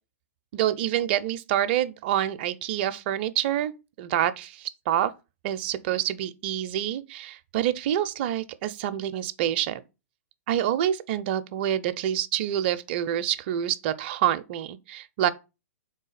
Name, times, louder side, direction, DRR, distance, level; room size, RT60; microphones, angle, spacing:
voice 1, 0.5-3.7 4.0-5.1 5.4-9.8 10.5-15.3, right 11 dB, 45° right, 0.4 m, -27 dB
3.7 x 3.3 x 4.0 m
figure-of-eight pair, 115°, 8 cm